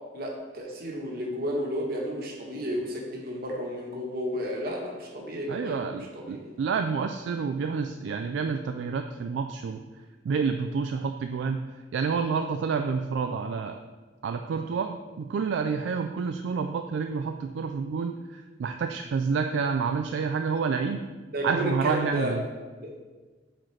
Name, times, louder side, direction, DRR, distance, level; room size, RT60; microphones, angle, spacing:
voice 1, 0.1-5.9 6.1-6.5 21.3-22.4 22.8-22.9, equal, 55° right, 0 dB, 1.1 m, -32 dB
voice 2, 5.5-9.8 10.2-11.6 11.9-13.8 14.2-21.0 21.4-22.4, right 5 dB, 70° right, 6 dB, 0.3 m, -29 dB
8.8 x 3.8 x 3.2 m, 1.3 s
head